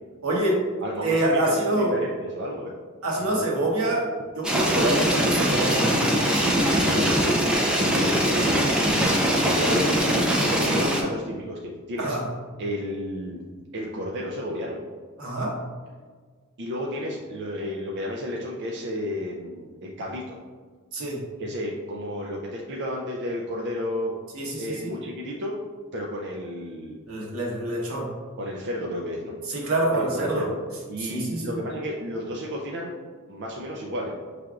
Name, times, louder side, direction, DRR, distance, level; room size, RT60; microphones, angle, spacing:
voice 1, 0.2-0.6 1.0-2.0 3.0-4.1 4.3-5.9 12.0-12.2 15.2-15.5 20.9-21.2 24.3-24.9 27.1-28.1 29.5-30.5 31.0-31.5, right 1 dB, 85° right, -3 dB, 1.1 m, -26 dB
voice 2, 0.8-2.7 3.2-3.5 6.0-6.5 6.9-8.6 9.4-12.2 12.6-13.4 13.7-14.8 16.6-20.4 21.4-24.1 24.6-25.5 25.9-27.0 28.4-29.4 29.9-30.6 30.9-33.0 33.3-34.1, equal, 55° right, -2 dB, 0.5 m, -32 dB
sound 1, 4.4-11.0, equal, 5° right, 0.6 m, -22 dB
5.7 x 3.3 x 2.5 m, 1.6 s
head